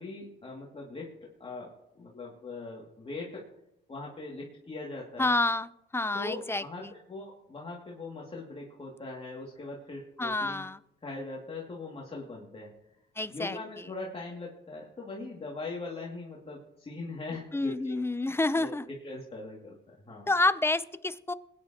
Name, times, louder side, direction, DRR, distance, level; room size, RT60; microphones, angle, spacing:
voice 1, 0.0-3.5 3.9-5.3 6.1-10.6 11.0-12.7 13.3-18.8 19.0-19.8 20.1-20.3, left 3 dB, 30° left, -3 dB, 2.5 m, -41 dB
voice 2, 5.2-6.9 10.2-10.8 13.2-13.9 17.5-18.9 20.3-21.3, left 2 dB, 10° left, 14 dB, 0.6 m, -29 dB
22.5 x 10.0 x 3.0 m, 0.83 s
cardioid pair, 90°, 20 cm